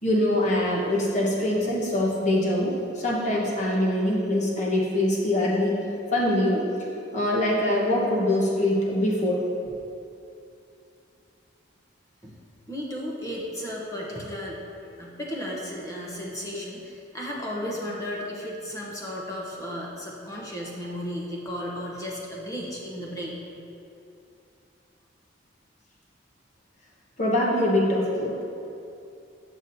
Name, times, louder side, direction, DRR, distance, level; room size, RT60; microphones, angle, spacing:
voice 1, 0.0-5.8 6.1-6.6 7.1-9.4 9.6-9.7 27.2-28.4, left 1 dB, 40° left, -4 dB, 1.2 m, -23 dB
voice 2, 12.7-23.4, equal, 15° left, -4 dB, 0.9 m, -34 dB
8.2 x 6.0 x 2.7 m, 2.7 s
head